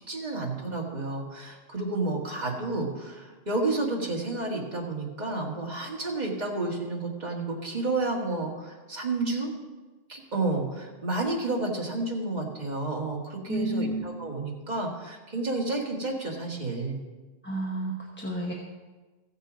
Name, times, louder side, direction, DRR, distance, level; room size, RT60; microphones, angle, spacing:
voice 1, 0.1-9.5 10.1-17.0, right 2 dB, 40° right, -1 dB, 1.9 m, -31 dB
voice 2, 13.5-14.0 17.4-18.5, right 1 dB, 10° left, -2 dB, 1.0 m, -31 dB
15.0 x 6.8 x 5.0 m, 1.2 s
omnidirectional pair, 1.1 m